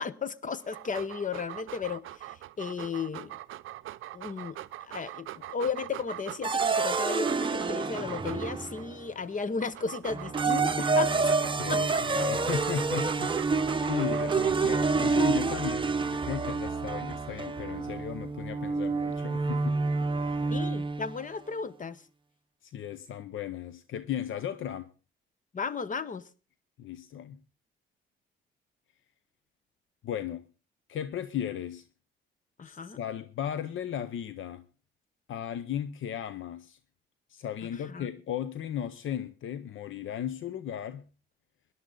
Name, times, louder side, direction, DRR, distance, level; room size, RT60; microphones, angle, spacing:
voice 1, 0.0-3.4 4.1-11.3 11.7-12.0 20.5-22.0 25.5-26.3 32.6-33.0 37.9-38.1, left 5 dB, 40° left, 1.0 m, -35 dB
Dog, 0.6-8.8 9.4-14.8, right 14 dB, 80° right, 0.5 m, -42 dB
sound 1, 6.4-9.0 10.1-21.2, right 4 dB, 25° right, 0.9 m, -28 dB
voice 2, 11.5-19.8 20.1-20.5 22.6-24.9 26.8-27.4 30.0-30.5 30.9-31.9 32.6-34.7 35.3-36.8 37.3-41.1, left 10 dB, 70° left, 0.8 m, -36 dB
18.0 x 11.0 x 3.9 m
cardioid pair, 80°, 21 cm